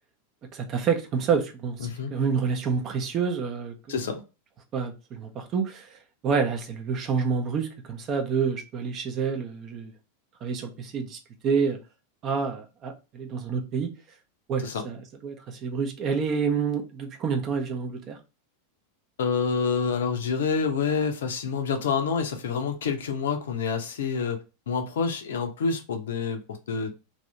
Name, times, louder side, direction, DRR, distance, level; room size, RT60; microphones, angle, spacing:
voice 1, 0.5-3.7 4.7-6.0 6.2-9.9 10.4-11.8 12.2-13.9 14.5-15.0 15.2-18.2, right 6 dB, 35° right, 0.7 m, -28 dB
voice 2, 1.8-2.1 3.9-4.2 14.6-14.9 19.2-26.9, left 5 dB, 60° left, 0.6 m, -28 dB
2.7 x 2.6 x 3.2 m
figure-of-eight pair, 90°, 0 cm